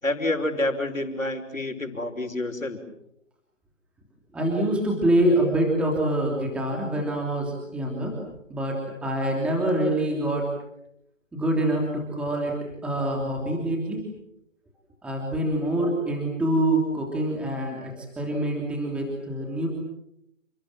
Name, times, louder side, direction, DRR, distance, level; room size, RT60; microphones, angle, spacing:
voice 1, 0.0-2.8, left 1 dB, 90° left, 6 dB, 5.7 m, -28 dB
voice 2, 4.3-8.2 8.5-10.5 11.3-14.0 15.0-19.7, right 1 dB, 5° right, -1 dB, 3.0 m, -25 dB
30.0 x 25.5 x 7.6 m, 0.80 s
figure-of-eight pair, 155°, 38 cm